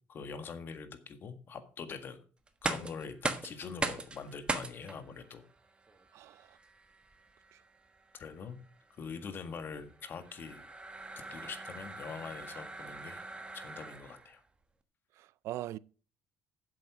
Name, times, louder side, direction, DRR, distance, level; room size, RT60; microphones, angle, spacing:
voice 1, 0.1-2.2 2.6-5.4 8.1-8.6 8.9-10.7 11.3-13.2 13.5-14.4, left 5 dB, 45° left, 1.7 m, -44 dB
sound 1, 2.5-14.4, right 3 dB, 20° right, 1.3 m, -41 dB
voice 2, 6.1-6.6 7.5-7.6 15.2-15.8, right 15 dB, 65° right, 0.4 m, -41 dB
7.6 x 7.6 x 6.1 m
supercardioid pair, 95°, 5 cm